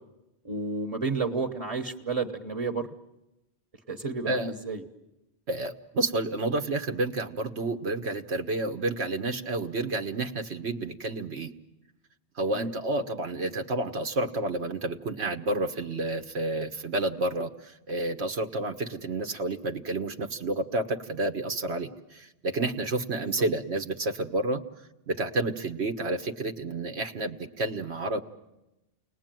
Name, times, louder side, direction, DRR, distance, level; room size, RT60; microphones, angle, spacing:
voice 1, 0.4-2.9 3.9-4.9 12.5-12.7 23.2-23.4, right 4 dB, 30° right, 3 dB, 1.3 m, -31 dB
voice 2, 5.5-11.5 12.4-24.6 25.1-28.2, right 2 dB, 85° right, 6 dB, 1.6 m, -30 dB
29.5 x 20.0 x 9.1 m, 0.98 s
omnidirectional pair, 1.1 m